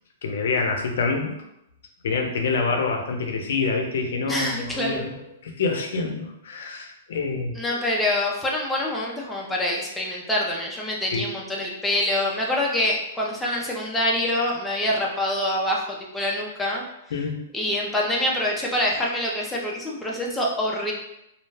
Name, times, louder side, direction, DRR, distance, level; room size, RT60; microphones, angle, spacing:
voice 1, 0.2-1.4 2.0-7.6 11.1-11.3 17.1-17.4, left 4 dB, 60° left, 3 dB, 0.5 m, -26 dB
voice 2, 4.3-5.0 7.5-16.8 17.5-20.9, left 1 dB, 5° left, -3 dB, 0.3 m, -25 dB
2.3 x 2.1 x 3.2 m, 0.83 s
hypercardioid pair, 175°, 0 cm